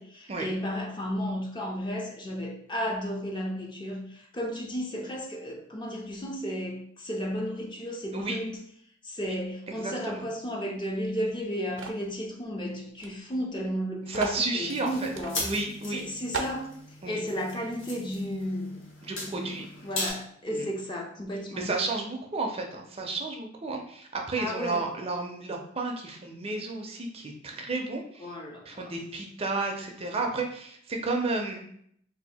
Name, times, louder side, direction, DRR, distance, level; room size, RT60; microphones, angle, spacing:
voice 1, 0.0-8.6 9.0-15.4 15.9-16.7 17.0-18.8 19.3-21.7 24.4-24.8 28.2-28.9, equal, 25° left, 0 dB, 0.5 m, -33 dB
voice 2, 9.7-10.2 14.1-15.1 15.4-16.0 17.0-17.2 19.0-19.6 20.5-20.7 21.5-28.3 28.7-31.6, right 3 dB, 30° right, 2 dB, 0.5 m, -32 dB
sound 1, 11.8-12.1 13.0-13.1 13.4-13.5 14.1-14.4 15.2-15.3 15.8-15.9 16.3-16.6, right 4 dB, 80° right, 0.5 m, -34 dB
sound 2, 14.6-20.1, left 2 dB, 70° left, 1.0 m, -38 dB
2.7 x 2.4 x 4.1 m, 0.66 s
head